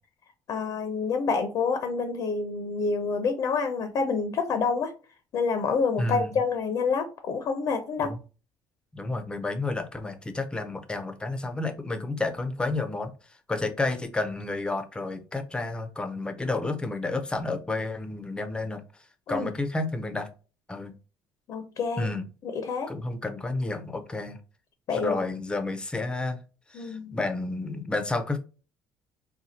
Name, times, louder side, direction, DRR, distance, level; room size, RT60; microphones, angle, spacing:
voice 1, 0.5-4.9 5.3-8.1 19.3-19.5 21.5-22.1 22.4-22.9 24.9-25.2 26.7-27.2, left 5 dB, 55° left, 0.6 m, -28 dB
voice 2, 6.0-6.3 8.0-8.2 8.9-13.1 13.5-18.8 19.3-20.3 20.7-20.9 22.0-22.2 22.9-24.4 24.9-26.4 26.7-28.4, left 2 dB, 10° left, 0.6 m, -30 dB
4.2 x 2.3 x 4.0 m
cardioid pair, 130°, 7 cm